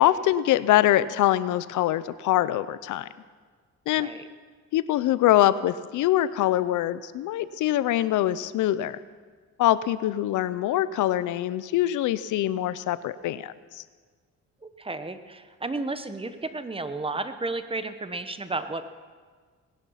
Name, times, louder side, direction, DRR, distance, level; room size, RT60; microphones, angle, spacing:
voice 1, 0.0-3.1 3.9-4.1 4.7-9.0 9.6-13.8, left 13 dB, 80° left, 16 dB, 0.6 m, -24 dB
voice 2, 14.6-18.8, right 3 dB, 20° right, 10 dB, 1.0 m, -32 dB
19.0 x 11.0 x 5.7 m, 1.5 s
cardioid pair, 90°, 30 cm